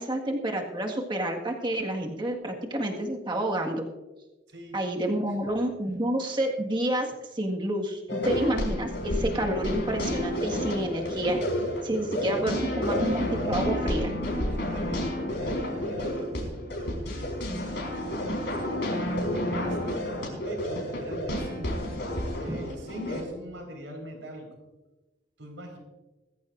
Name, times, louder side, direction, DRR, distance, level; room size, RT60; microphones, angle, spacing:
voice 1, 0.0-3.9 4.7-11.4 11.8-14.1 22.5-22.6, right 1 dB, 25° right, 0 dB, 1.8 m, -29 dB
voice 2, 4.5-4.8 5.2-5.4 11.9-12.9 14.4-18.6 19.3-21.8 22.3-24.5 25.4-25.8, right 1 dB, 80° right, 2 dB, 4.8 m, -42 dB
sound 1, 8.1-23.2, left 1 dB, 65° left, 4.7 m, -30 dB
21.5 x 14.5 x 2.6 m, 1.1 s
head